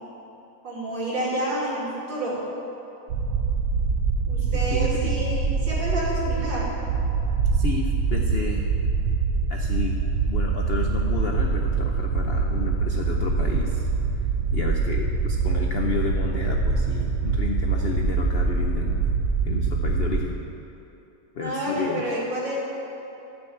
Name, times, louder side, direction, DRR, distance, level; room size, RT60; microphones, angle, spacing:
voice 1, 0.6-2.4 4.3-6.7 21.4-22.6, right 1 dB, 70° right, -6 dB, 3.5 m, -29 dB
sound 1, 3.1-20.3, right 4 dB, 85° right, 1.6 m, -24 dB
voice 2, 4.5-5.1 7.5-8.7 9.5-10.0 10.3-13.9 14.5-19.0 19.4-20.6 21.3-22.1, left 5 dB, 85° left, 0 dB, 0.5 m, -31 dB
13.0 x 6.1 x 7.8 m, 3.0 s
omnidirectional pair, 2.1 m